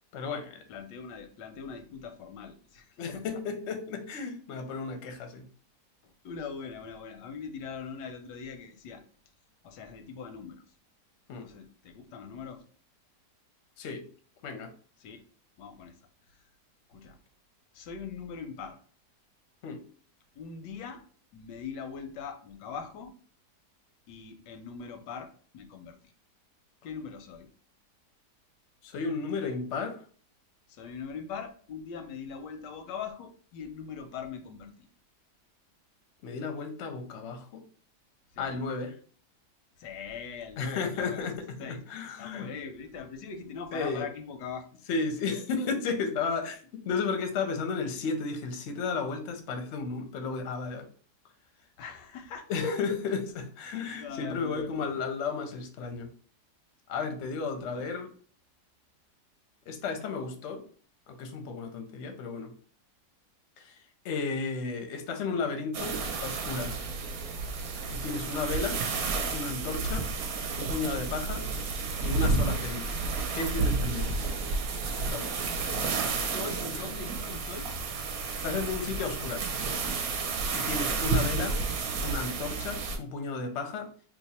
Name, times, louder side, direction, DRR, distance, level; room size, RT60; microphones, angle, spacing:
voice 1, 0.1-0.6 3.0-5.5 11.3-11.5 13.8-14.1 14.4-14.7 19.6-19.8 28.8-30.0 36.2-37.6 38.4-38.9 40.6-42.5 43.7-44.1 44.9-46.6 46.8-50.9 52.5-56.1 56.9-58.1 59.7-60.6 61.1-62.5 63.6-66.9 67.9-68.8 69.3-70.1 70.6-71.5 72.0-72.9 73.3-74.2 75.1-75.6 78.4-79.5 80.5-81.6 82.0-84.0, left 4 dB, 60° left, 4 dB, 0.7 m, -33 dB
voice 2, 0.7-3.4 6.0-9.0 9.6-10.6 11.4-12.6 15.0-15.2 15.6-16.0 16.3-16.4 16.9-17.2 17.7-18.8 20.4-21.0 21.3-23.1 24.1-26.0 26.8-27.5 30.7-34.9 38.3-38.6 39.8-41.3 41.6-41.8 42.2-44.7 51.8-52.5 54.0-55.0 57.6-58.0 75.9-77.7 81.0-81.3, left 6 dB, 90° left, 7 dB, 1.3 m, -41 dB
sound 1, 65.7-83.0, right 4 dB, 65° right, 1.0 m, -31 dB
3.0 x 2.1 x 4.1 m, 0.43 s
omnidirectional pair, 1.8 m